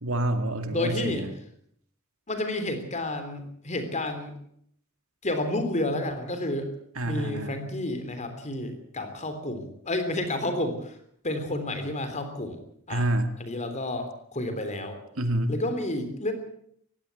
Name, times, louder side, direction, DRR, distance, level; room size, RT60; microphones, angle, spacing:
voice 1, 0.0-1.3 7.0-7.6 12.9-13.3 15.2-15.5, right 1 dB, 65° right, 8 dB, 2.3 m, -27 dB
voice 2, 0.7-1.3 2.3-4.3 5.2-6.7 7.0-11.0 11.2-12.6 12.9-13.0 13.4-15.0 15.5-16.3, left 1 dB, 30° left, 8 dB, 3.5 m, -30 dB
19.0 x 16.0 x 8.5 m, 0.68 s
head